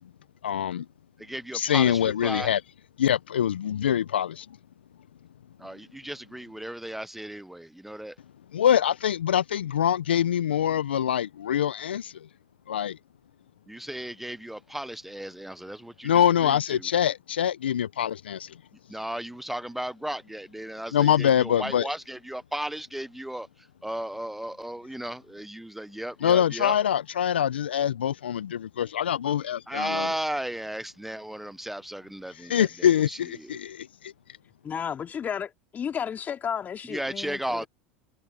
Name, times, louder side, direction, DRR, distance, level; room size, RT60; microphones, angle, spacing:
voice 1, 0.4-0.9 1.5-2.6 3.0-4.6 8.5-12.3 12.7-13.0 16.0-18.6 20.9-21.9 26.2-30.1 32.3-34.1, left 9 dB, 80° left, 0.7 m, -24 dB
voice 2, 1.2-2.5 5.6-8.2 13.7-16.8 18.9-26.7 29.7-32.7 33.1-33.5 36.9-37.7, right 1 dB, 5° right, 0.7 m, -35 dB
voice 3, 34.6-37.7, left 8 dB, 30° left, 2.5 m, -33 dB
hypercardioid pair, 85°, 6 cm